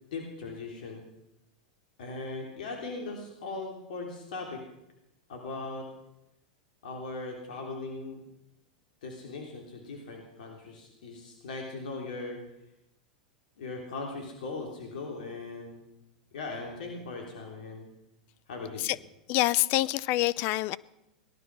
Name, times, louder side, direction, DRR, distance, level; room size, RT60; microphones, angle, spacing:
voice 1, 0.1-1.0 2.0-4.6 5.3-5.9 6.8-8.2 9.0-12.4 13.6-15.8 16.3-17.9 18.5-18.8, left 3 dB, 75° left, 1 dB, 3.2 m, -39 dB
voice 2, 19.3-20.8, left 17 dB, 50° left, 20 dB, 0.5 m, -26 dB
18.5 x 12.0 x 6.2 m, 0.89 s
hypercardioid pair, 100°, 4 cm